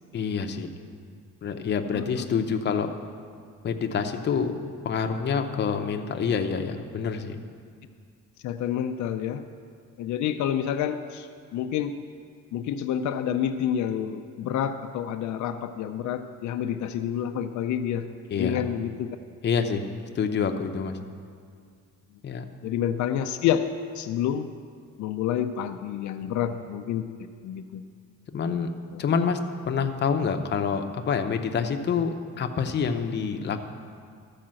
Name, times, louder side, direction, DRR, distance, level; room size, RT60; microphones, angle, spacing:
voice 1, 0.1-0.7 1.4-2.9 3.6-4.5 4.8-7.4 18.3-18.6 19.4-19.8 20.1-21.0 22.2-22.4 26.2-26.4 28.3-28.7 29.0-29.4 29.6-33.6, left 6 dB, 35° left, 5 dB, 0.7 m, -27 dB
voice 2, 1.9-2.3 8.4-9.4 10.0-11.3 11.5-12.0 12.5-18.1 18.4-19.1 22.6-24.5 25.0-27.0 27.4-27.8, left 9 dB, 75° left, 7 dB, 0.5 m, -28 dB
13.0 x 4.9 x 7.5 m, 2.1 s
cardioid pair, 145°, 30 cm